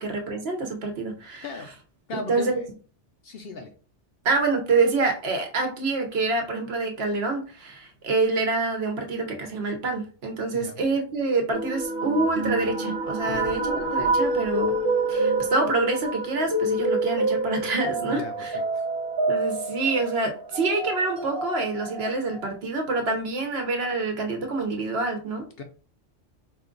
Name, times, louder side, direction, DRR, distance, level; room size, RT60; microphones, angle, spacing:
voice 1, 0.0-1.6 2.1-2.6 4.2-14.8 15.1-18.6 19.3-25.5, right 3 dB, 60° right, 4 dB, 1.0 m, -26 dB
voice 2, 2.1-2.6 3.2-3.7 10.5-10.8 13.3-13.5 18.1-18.8 25.6-25.7, left 3 dB, 60° left, 5 dB, 0.7 m, -37 dB
sound 1, 11.5-22.5, right 2 dB, 25° right, 0.6 m, -27 dB
4.5 x 2.3 x 3.7 m, 0.38 s
omnidirectional pair, 1.3 m